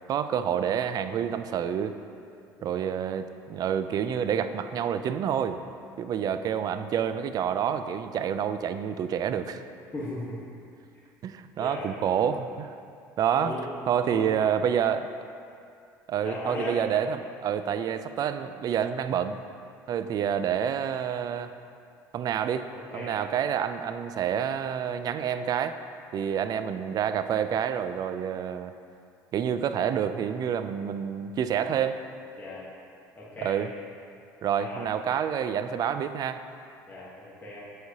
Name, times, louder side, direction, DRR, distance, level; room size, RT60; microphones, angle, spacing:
voice 1, 0.1-2.0 2.6-5.6 6.0-9.6 11.2-12.7 13.2-13.6 13.9-15.1 16.1-19.4 19.9-21.5 22.1-22.6 22.9-25.7 26.1-28.7 29.3-32.0 33.4-33.7 34.4-36.4, right 8 dB, 50° right, 10 dB, 0.3 m, -28 dB
voice 2, 6.3-6.6 9.9-10.4 11.6-11.9 13.4-13.6 14.0-14.3 16.2-16.8 19.9-20.1 22.7-23.2 26.4-26.7 32.4-32.7 33.1-33.6 34.6-34.9 36.9-37.6, left 1 dB, 20° left, -7 dB, 1.2 m, -38 dB
7.7 x 4.7 x 2.8 m, 2.4 s
supercardioid pair, 75°, 8 cm